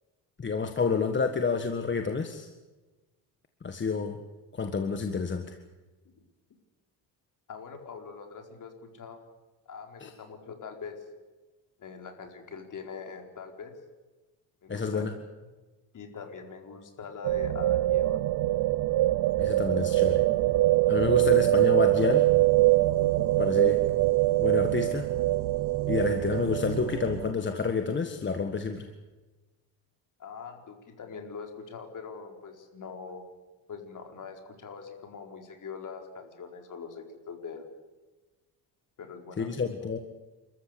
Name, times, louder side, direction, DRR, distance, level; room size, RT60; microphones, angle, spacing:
voice 1, 0.4-2.5 3.6-4.2 4.5-5.6 10.0-10.1 14.7-15.1 19.4-20.2 20.9-22.3 23.4-23.8 24.4-25.1 25.9-28.9 39.4-40.0, left 5 dB, 25° left, 6 dB, 1.6 m, -29 dB
voice 2, 7.5-9.2 9.7-11.0 11.8-13.7 14.6-15.1 15.9-18.2 30.2-33.3 33.7-37.7 39.0-39.5, left 5 dB, 45° left, 4 dB, 4.6 m, -43 dB
sound 1, 17.2-27.3, right 17 dB, 65° right, 0.8 m, -24 dB
29.0 x 14.0 x 8.5 m, 1.2 s
cardioid pair, 130°, 43 cm